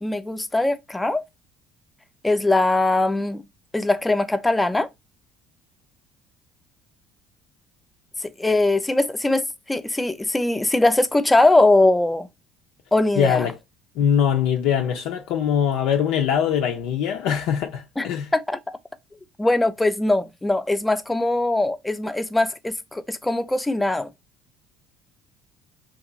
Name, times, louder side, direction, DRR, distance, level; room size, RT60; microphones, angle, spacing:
voice 1, 0.0-1.2 2.2-3.4 3.7-4.9 8.2-12.3 12.9-13.5 18.0-18.1 18.3-18.8 19.4-24.1, left 2 dB, 10° left, 0.5 m, -21 dB
voice 2, 13.2-13.6 14.0-18.3, left 8 dB, 65° left, 0.4 m, -22 dB
2.8 x 2.5 x 3.8 m
hypercardioid pair, 60°, 0 cm